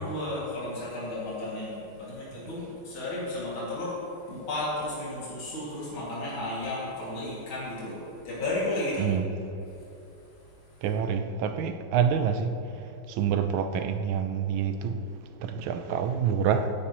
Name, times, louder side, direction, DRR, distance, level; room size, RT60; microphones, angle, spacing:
voice 1, 0.0-9.1, left 1 dB, 75° left, -8 dB, 3.4 m, -33 dB
voice 2, 10.8-16.7, right 7 dB, 75° right, 8 dB, 1.5 m, -27 dB
16.0 x 10.0 x 3.1 m, 2.8 s
omnidirectional pair, 2.2 m